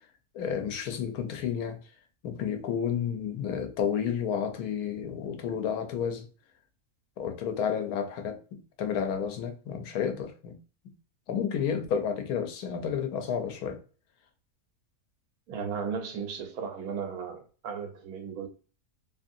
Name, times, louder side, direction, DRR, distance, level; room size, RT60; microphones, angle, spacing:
voice 1, 0.3-1.8 2.2-6.3 7.2-10.6 11.3-13.8, left 7 dB, 90° left, 1.2 m, -31 dB
voice 2, 15.5-18.5, right 6 dB, 85° right, 1.2 m, -35 dB
3.0 x 2.6 x 2.5 m
omnidirectional pair, 1.6 m